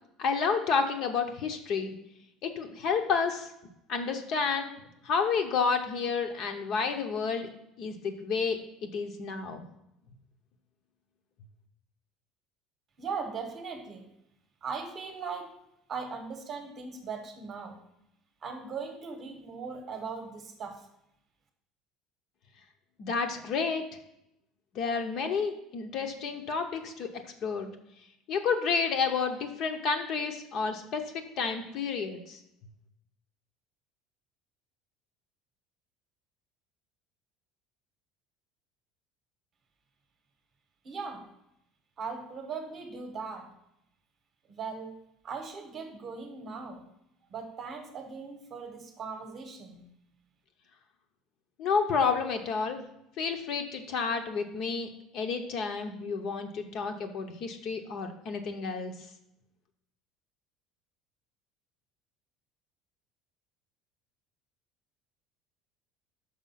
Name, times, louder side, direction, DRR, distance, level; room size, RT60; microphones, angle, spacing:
voice 1, 0.2-1.9 2.4-3.5 3.9-4.7 5.0-7.5 7.8-9.6 23.0-23.8 24.7-27.1 27.4-27.7 28.3-32.4 51.6-52.8 53.2-54.9 55.1-58.9, left 5 dB, 40° left, 5 dB, 0.7 m, -30 dB
voice 2, 13.0-14.1 14.6-15.5 15.9-17.8 18.4-20.9 40.8-41.3 42.0-43.5 44.5-45.0 45.2-46.8 47.3-49.9, right 5 dB, 25° right, 5 dB, 0.9 m, -39 dB
6.2 x 4.9 x 5.5 m, 0.80 s
cardioid pair, 180°, 0 cm